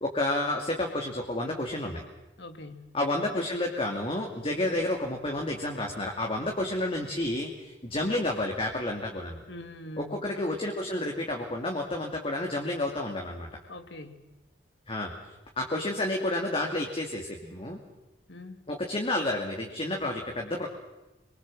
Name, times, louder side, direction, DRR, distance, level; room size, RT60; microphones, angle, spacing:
voice 1, 0.0-2.0 2.9-9.4 10.0-13.5 14.9-15.1 15.6-17.8 18.7-20.7, left 1 dB, 30° left, 1 dB, 2.5 m, -30 dB
voice 2, 2.4-2.9 9.5-10.3 13.7-14.3 18.3-18.6, left 1 dB, 75° left, 9 dB, 2.4 m, -43 dB
26.5 x 23.5 x 7.6 m, 1.1 s
head